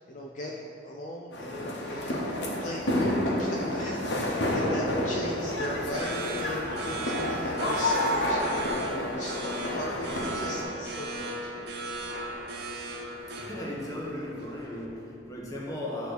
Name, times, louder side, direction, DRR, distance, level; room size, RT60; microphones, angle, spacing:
voice 1, 0.1-11.7, left 1 dB, 45° left, -2 dB, 0.5 m, -38 dB
sound 1, 1.3-10.6, left 1 dB, 80° left, 1.1 m, -30 dB
sound 2, 5.3-14.8, right 1 dB, 65° right, 0.9 m, -36 dB
voice 2, 13.4-16.1, left 1 dB, 20° left, -3 dB, 1.2 m, -36 dB
9.4 x 3.2 x 6.5 m, 2.8 s
head